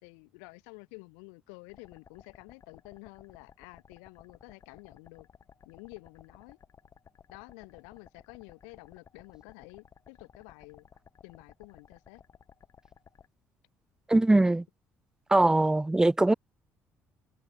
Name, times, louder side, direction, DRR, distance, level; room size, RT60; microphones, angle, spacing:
voice 1, 0.0-5.3 5.6-6.6 7.3-10.9 11.2-12.2, left 40 dB or more, 65° left, 2.8 m, -50 dB
sound 1, 1.7-13.3, left 7 dB, 40° left, 2.7 m, -57 dB
voice 2, 14.1-14.6 15.3-16.3, right 2 dB, 10° right, 0.3 m, -22 dB
figure-of-eight pair, 50°, 8 cm